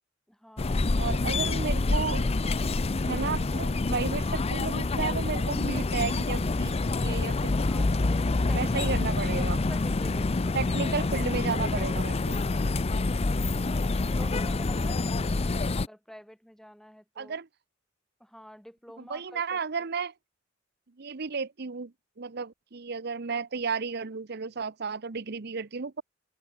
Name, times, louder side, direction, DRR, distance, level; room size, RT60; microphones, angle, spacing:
voice 1, 0.3-1.6 7.6-9.0 9.4-10.6 13.7-17.4 18.2-19.6, equal, ahead, 3.9 m, -49 dB
sound 1, 0.6-15.9, left 3 dB, 30° left, 0.6 m, -27 dB
voice 2, 1.0-2.3 3.0-7.8 8.5-9.6 10.5-12.4 17.2-17.5 19.0-20.1 21.0-26.0, right 5 dB, 60° right, 0.8 m, -33 dB
head